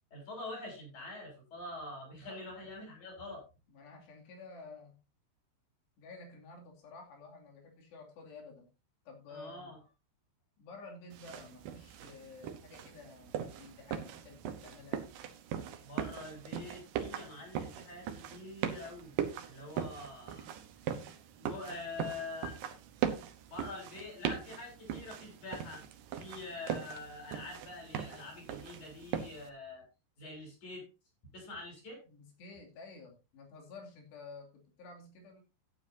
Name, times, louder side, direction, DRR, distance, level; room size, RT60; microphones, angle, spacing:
voice 1, 0.1-3.4 9.3-9.8 15.8-19.1 19.4-20.5 21.4-22.6 23.5-25.8 26.2-29.9 30.2-30.9 31.3-32.1, left 2 dB, 45° left, -2 dB, 7.6 m, -45 dB
voice 2, 3.7-5.0 6.0-8.7 9.1-9.7 10.6-15.1 32.1-35.4, left 3 dB, 70° left, 1 dB, 4.8 m, -51 dB
sound 1, 11.1-29.5, right 9 dB, 70° right, 2.3 m, -40 dB
14.5 x 9.8 x 2.7 m, 0.29 s
omnidirectional pair, 5.1 m